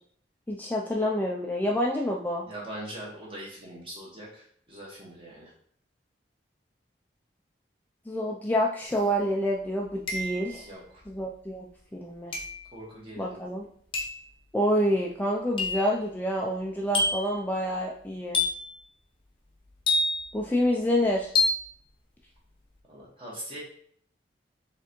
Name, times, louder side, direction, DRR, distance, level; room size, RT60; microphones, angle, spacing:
voice 1, 0.5-2.5 8.1-10.7 11.1-11.7 11.9-12.4 13.2-13.7 14.5-18.4 20.3-21.3, equal, 10° left, -2 dB, 0.3 m, -27 dB
voice 2, 2.4-5.5 10.5-11.0 12.7-13.4 22.9-23.6, right 1 dB, 30° right, -5 dB, 1.4 m, -42 dB
sound 1, 8.9-9.0 10.1-10.6 12.3-12.7 13.9-14.3 15.6-15.9 16.9-17.4 18.3-18.8 19.9-20.4 21.4-21.7, left 3 dB, 30° left, 0.7 m, -27 dB
4.6 x 3.4 x 2.9 m, 0.62 s
head